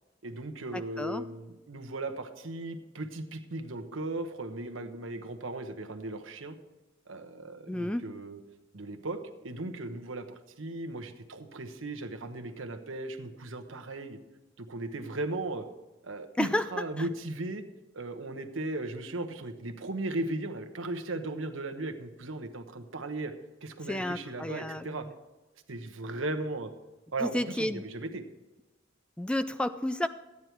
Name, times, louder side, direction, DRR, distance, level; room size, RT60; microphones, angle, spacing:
voice 1, 0.2-6.5 7.1-8.4 8.7-9.2 9.4-14.2 14.6-15.7 16.0-17.6 17.9-23.3 23.6-25.1 25.7-26.7 27.1-28.2, right 2 dB, 80° right, 7 dB, 1.1 m, -37 dB
voice 2, 7.7-8.1 16.4-16.6 17.0-17.1 23.9-25.1 27.2-27.8 29.2-30.1, left 1 dB, 5° left, 11 dB, 0.3 m, -31 dB
14.0 x 9.7 x 4.6 m, 1.1 s
head